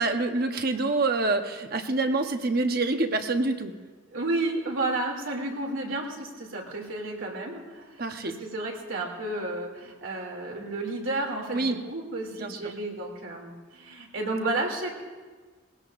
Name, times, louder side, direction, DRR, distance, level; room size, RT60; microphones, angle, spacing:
voice 1, 0.0-3.7 8.0-8.3 11.5-11.8 12.4-12.6, right 3 dB, 50° right, 6 dB, 1.0 m, -26 dB
voice 2, 4.1-15.0, right 2 dB, 80° right, 0 dB, 2.8 m, -32 dB
21.0 x 17.0 x 2.6 m, 1.4 s
head